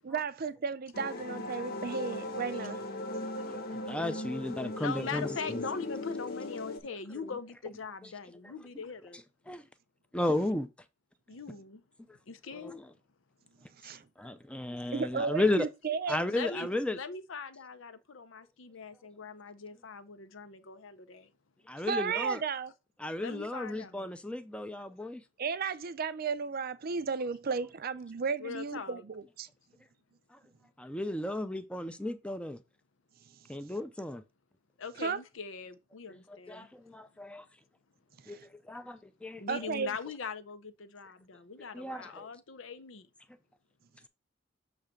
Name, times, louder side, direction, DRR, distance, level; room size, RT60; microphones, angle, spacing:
voice 1, 0.0-2.8 13.8-14.0 14.9-16.2 21.9-22.7 25.4-29.5 35.0-35.2 38.2-38.4 39.5-39.9, right 5 dB, 50° right, 0.5 m, -34 dB
sound 1, 0.9-6.8, left 2 dB, 50° left, 0.9 m, -38 dB
voice 2, 3.1-5.6 7.2-7.3 8.4-8.5 9.5-9.6 10.1-10.7 12.5-12.9 14.2-15.7 16.1-17.0 21.7-22.4 23.0-25.2 30.8-32.6 33.5-34.2 36.1-37.4 38.3-38.4 38.7-39.5 41.7-42.3, left 1 dB, 5° left, 0.5 m, -34 dB
voice 3, 4.8-9.2 11.3-11.8 12.3-12.8 16.3-16.7 16.9-21.3 23.2-24.1 28.4-29.0 34.8-36.7 39.4-43.1, left 5 dB, 80° left, 0.7 m, -41 dB
7.0 x 3.3 x 5.1 m
head